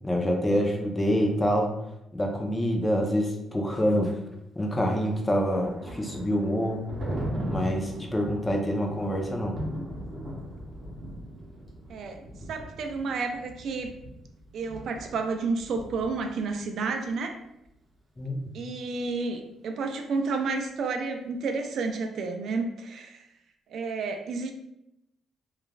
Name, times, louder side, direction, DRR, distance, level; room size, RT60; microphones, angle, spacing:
voice 1, 0.0-1.7 2.1-4.1 4.6-6.9 7.5-9.5 18.2-18.3, equal, 15° left, 1 dB, 0.5 m, -26 dB
Thunder, 4.8-16.6, right 1 dB, 30° right, 0.9 m, -38 dB
voice 2, 11.9-13.9 14.5-17.4 18.5-23.2 23.7-24.5, right 4 dB, 65° right, 5 dB, 0.3 m, -31 dB
3.0 x 2.3 x 2.3 m, 0.84 s
cardioid pair, 90°, 0 cm